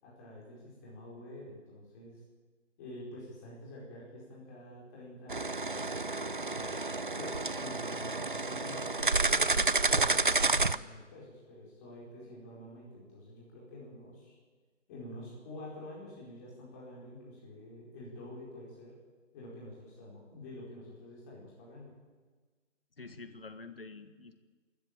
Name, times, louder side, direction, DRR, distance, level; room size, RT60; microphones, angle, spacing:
voice 1, 0.0-2.2 2.8-6.7 7.1-9.6 10.0-14.4 14.9-18.9 19.3-21.9, left 1 dB, 15° left, -4 dB, 4.7 m, -48 dB
sound 1, 5.3-10.8, right 3 dB, 45° right, 0.5 m, -30 dB
voice 2, 23.0-24.3, left 3 dB, 50° left, 10 dB, 1.8 m, -47 dB
25.5 x 13.5 x 8.8 m, 1.4 s
figure-of-eight pair, 160°, 37 cm